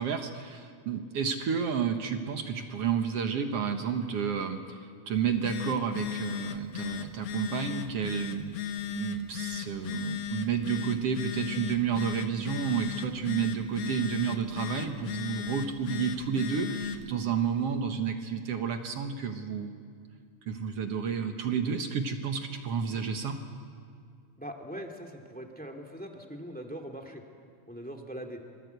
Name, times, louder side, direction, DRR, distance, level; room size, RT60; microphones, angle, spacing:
voice 1, 0.0-8.6 8.9-19.7 20.5-23.4, right 7 dB, 60° right, 6 dB, 1.8 m, -31 dB
Telephone, 5.2-17.1, left 8 dB, 60° left, 1.7 m, -36 dB
voice 2, 24.4-27.2 27.7-28.4, equal, 5° left, 3 dB, 1.4 m, -41 dB
27.5 x 24.5 x 8.1 m, 2.2 s
omnidirectional pair, 4.1 m